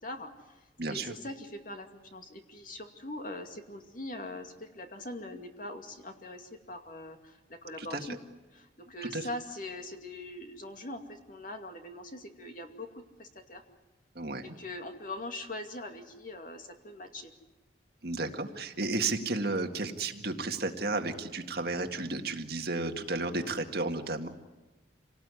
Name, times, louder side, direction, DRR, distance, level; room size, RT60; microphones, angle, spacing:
voice 1, 0.0-0.6 0.9-8.2 8.5-12.9 13.2-13.6 14.4-17.3, left 1 dB, 50° left, 4 dB, 2.5 m, -42 dB
voice 2, 0.8-1.1 7.8-8.0 9.0-9.3 14.2-14.5 18.0-24.3, right 3 dB, 60° right, 5 dB, 1.9 m, -33 dB
27.0 x 18.5 x 9.7 m, 1.1 s
head